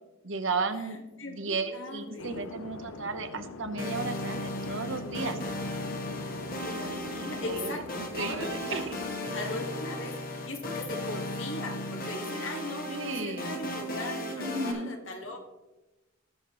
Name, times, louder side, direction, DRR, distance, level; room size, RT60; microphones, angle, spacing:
voice 1, 0.2-5.4 7.2-9.0 12.9-13.6 14.4-14.9, right 3 dB, 65° right, 9 dB, 0.9 m, -34 dB
voice 2, 1.2-2.5 5.0-5.5 6.6-8.9 9.3-15.4, left 2 dB, 65° left, 3 dB, 1.7 m, -39 dB
sound 1, 2.2-9.2, left 3 dB, 80° left, 0.6 m, -43 dB
sound 2, 3.8-14.7, left 1 dB, 45° left, 1.3 m, -36 dB
19.0 x 6.4 x 3.1 m, 1.0 s
head